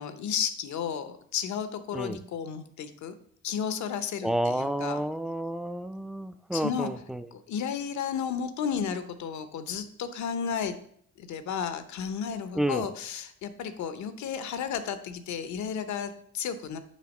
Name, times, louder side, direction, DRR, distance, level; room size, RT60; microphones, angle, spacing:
voice 1, 0.0-3.1 3.4-5.0 6.5-6.9 7.3-10.8 11.2-16.8, left 7 dB, 70° left, 11 dB, 0.8 m, -33 dB
voice 2, 4.2-7.3 12.5-12.9, right 1 dB, ahead, 11 dB, 0.3 m, -30 dB
7.4 x 3.4 x 5.3 m, 0.64 s
cardioid pair, 90°, 30 cm